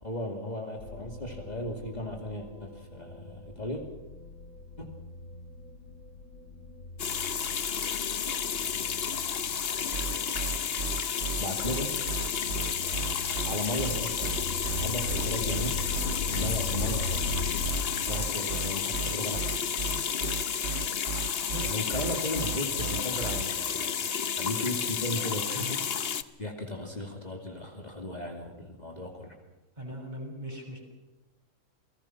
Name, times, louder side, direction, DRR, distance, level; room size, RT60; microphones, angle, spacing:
voice 1, 0.0-3.8 4.8-4.9 11.4-12.0 13.4-14.4 14.8-15.8 16.3-17.3 18.0-19.6 21.6-24.1 24.3-25.8 26.4-29.4, left 1 dB, 30° left, 2 dB, 2.6 m, -35 dB
sound 1, 0.8-18.0, left 3 dB, 70° left, 2.2 m, -40 dB
sound 2, 7.0-26.2, left 7 dB, 50° left, 1.1 m, -31 dB
sound 3, 9.9-23.4, right 5 dB, 55° right, 1.2 m, -35 dB
voice 2, 21.5-22.0 22.8-23.2 25.5-25.7 29.8-30.8, equal, 35° right, 0 dB, 6.5 m, -40 dB
29.0 x 19.5 x 6.0 m, 1.1 s
omnidirectional pair, 1.4 m